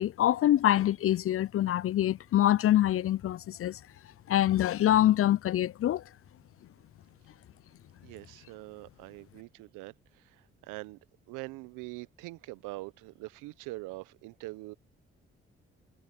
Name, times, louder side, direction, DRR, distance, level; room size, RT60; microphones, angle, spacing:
voice 1, 0.0-3.8 4.3-6.0, left 12 dB, 45° left, 0.4 m, -25 dB
voice 2, 8.0-11.0 11.3-14.7, right 22 dB, 80° right, 1.3 m, -43 dB
hypercardioid pair, 45°, 31 cm